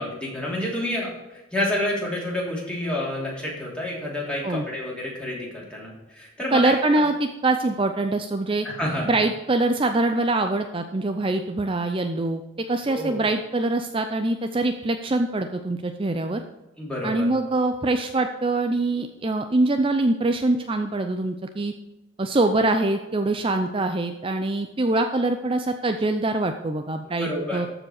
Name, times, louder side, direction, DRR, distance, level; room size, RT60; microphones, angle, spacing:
voice 1, 0.0-6.7 8.6-9.2 12.9-13.2 16.8-17.3 27.2-27.6, left 1 dB, 5° left, -4 dB, 3.1 m, -29 dB
voice 2, 6.5-8.7 9.1-12.4 12.7-16.4 17.0-21.7 22.2-27.7, right 2 dB, 25° right, 7 dB, 0.5 m, -24 dB
13.5 x 5.0 x 6.4 m, 1.0 s
head